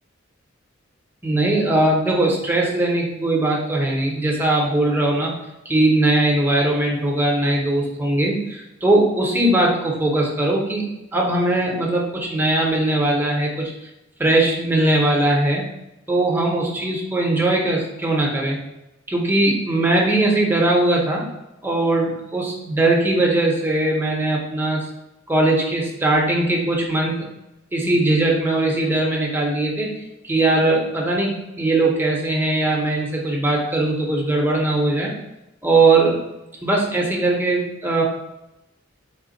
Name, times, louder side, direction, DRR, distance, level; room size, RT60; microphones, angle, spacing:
voice 1, 1.2-5.3 5.7-10.8 11.1-13.7 14.2-15.6 16.1-18.6 19.1-21.2 21.6-24.9 25.3-27.3 27.7-29.9 30.2-35.1 35.6-36.2 36.6-38.0, right 2 dB, 10° right, -2 dB, 0.6 m, -20 dB
4.1 x 2.2 x 3.8 m, 0.92 s
head